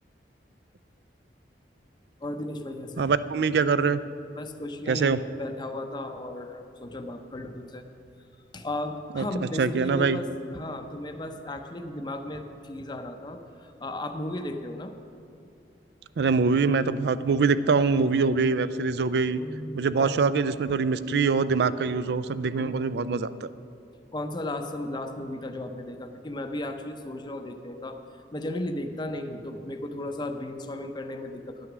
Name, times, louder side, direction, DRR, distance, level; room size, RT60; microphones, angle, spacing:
voice 1, 2.2-3.1 4.3-7.9 8.5-15.0 19.4-20.2 22.6-23.0 24.1-31.7, left 1 dB, 25° left, 5 dB, 0.6 m, -35 dB
voice 2, 3.0-4.0 4.9-5.2 9.1-9.2 9.6-10.2 16.2-19.4 19.7-23.5, right 4 dB, 65° right, 14 dB, 0.4 m, -24 dB
11.0 x 9.1 x 6.1 m, 2.6 s
head